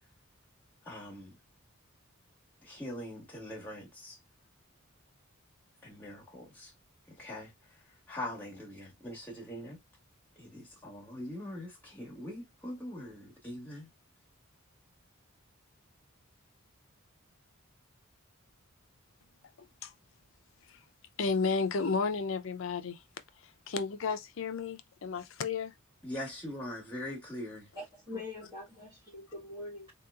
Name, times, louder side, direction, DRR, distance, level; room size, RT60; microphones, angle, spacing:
voice 1, 0.8-1.3 2.6-4.2 5.8-6.7 7.1-9.8 10.4-13.9 26.0-27.7, left 1 dB, 5° left, 1.4 m, -42 dB
voice 2, 21.2-23.0 23.7-25.7 28.1-28.2, left 4 dB, 65° left, 0.5 m, -32 dB
voice 3, 27.7-29.9, left 2 dB, 20° right, 1.4 m, -43 dB
3.7 x 2.8 x 2.3 m
head